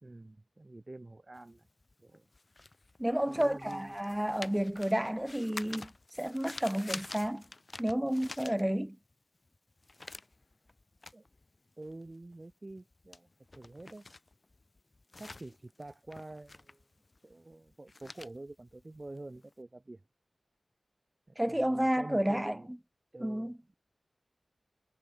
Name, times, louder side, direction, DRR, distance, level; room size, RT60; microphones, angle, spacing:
voice 1, 0.0-1.7 2.0-2.3 3.3-4.3 11.1-11.2 11.8-13.3 13.5-14.1 15.1-16.8 17.2-20.0 21.3-22.7 23.1-23.8, right 2 dB, 30° right, 1.5 m, -48 dB
sound 1, 1.4-9.1 9.4-19.5, left 2 dB, 40° left, 3.2 m, -48 dB
voice 2, 3.0-5.9 6.2-7.4 7.8-9.0 21.4-22.6 23.2-23.5, right 1 dB, 10° right, 0.3 m, -31 dB
wide cardioid pair, 80°, 0 cm